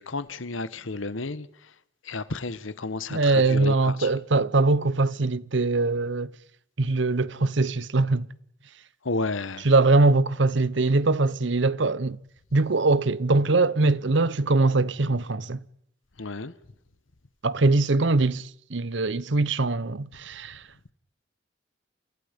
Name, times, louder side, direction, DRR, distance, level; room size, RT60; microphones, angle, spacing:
voice 1, 0.0-1.7 2.0-4.1 9.0-9.7 16.2-16.5, left 3 dB, 90° left, 1.2 m, -32 dB
voice 2, 3.1-6.3 6.8-8.3 9.6-12.2 12.5-15.6 17.4-20.6, right 3 dB, 70° right, 0.9 m, -22 dB
29.5 x 27.0 x 5.3 m
head